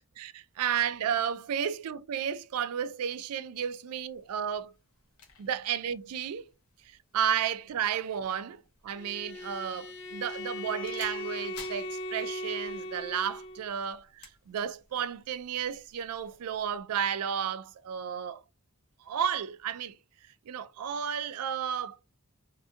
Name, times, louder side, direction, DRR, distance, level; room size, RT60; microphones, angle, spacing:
voice 1, 0.0-4.7 5.4-6.5 6.8-18.4 19.0-20.0 20.5-22.0, right 8 dB, 85° right, 0.3 m, -33 dB
sound 1, 3.9-16.4, left 5 dB, 75° left, 0.8 m, -56 dB
Bowed string instrument, 8.9-13.7, left 1 dB, 50° left, 0.4 m, -38 dB
2.7 x 2.6 x 2.2 m
head